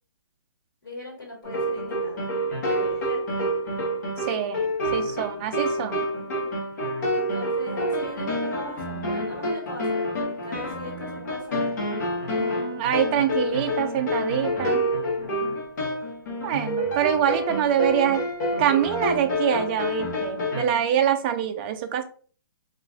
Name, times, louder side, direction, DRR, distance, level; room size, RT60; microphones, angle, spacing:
voice 1, 0.8-2.3 2.7-3.4 6.2-6.6 7.1-11.8 15.2-15.6 20.8-20.9, left 1 dB, 85° left, -2 dB, 1.2 m, -40 dB
sound 1, 1.4-20.6, equal, 50° left, 1.0 m, -28 dB
voice 2, 4.3-6.0 12.4-14.8 16.4-18.2 18.6-22.0, right 9 dB, 25° right, 7 dB, 0.3 m, -25 dB
2.9 x 2.4 x 2.5 m, 0.43 s
hypercardioid pair, 145°, 12 cm